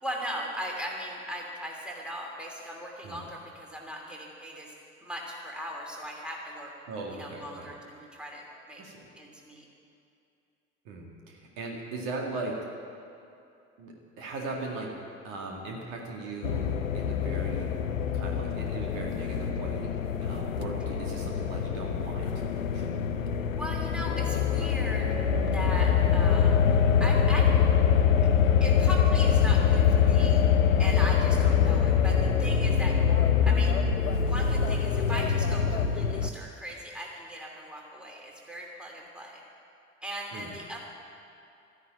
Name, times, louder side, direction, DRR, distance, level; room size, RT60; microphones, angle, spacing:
voice 1, 0.0-4.7 5.0-6.7 7.1-8.8 9.2-9.7 23.6-25.1 25.5-26.6 27.0-27.5 28.6-30.4 30.8-33.0 33.4-33.8 34.2-39.4 40.0-40.8, equal, ahead, -1 dB, 2.9 m, -38 dB
voice 2, 6.9-7.7 8.8-9.1 10.9-12.6 13.8-15.0 15.2-17.7 18.1-22.9 40.3-40.5, right 2 dB, 55° right, 0 dB, 2.2 m, -38 dB
sound 1, 16.4-36.3, left 7 dB, 80° left, 0.7 m, -24 dB
13.5 x 11.0 x 8.8 m, 2.6 s
figure-of-eight pair, 65°, 39 cm